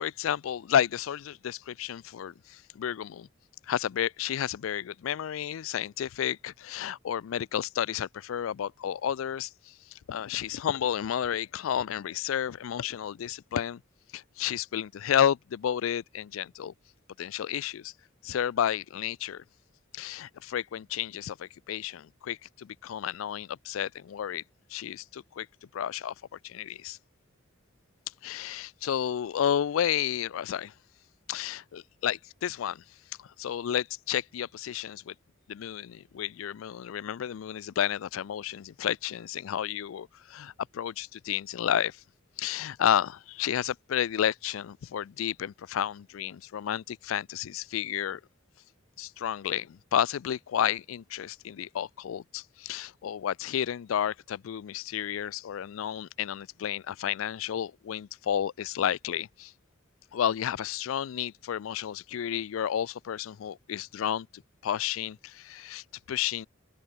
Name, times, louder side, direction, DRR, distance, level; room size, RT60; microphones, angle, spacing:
voice 1, 0.0-3.3 3.7-9.5 10.1-13.8 14.1-16.7 17.2-17.9 18.2-19.4 19.9-24.4 24.7-25.5 25.7-26.1 26.4-27.0 28.2-30.7 31.3-32.8 33.4-35.1 35.5-42.0 42.4-48.2 49.0-59.5 60.1-66.5, left 9 dB, 85° left, 0.4 m, -31 dB
open air
head